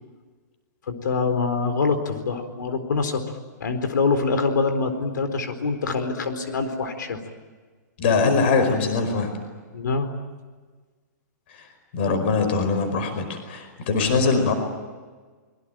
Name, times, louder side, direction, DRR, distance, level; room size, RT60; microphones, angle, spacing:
voice 1, 0.9-3.2 3.6-7.2 9.7-10.1 14.0-14.2, left 4 dB, 85° left, 9 dB, 4.3 m, -25 dB
voice 2, 8.0-9.3 11.5-11.7 11.9-14.5, left 4 dB, 35° left, 8 dB, 4.9 m, -22 dB
25.5 x 22.5 x 9.1 m, 1.4 s
hypercardioid pair, 175°, 10 cm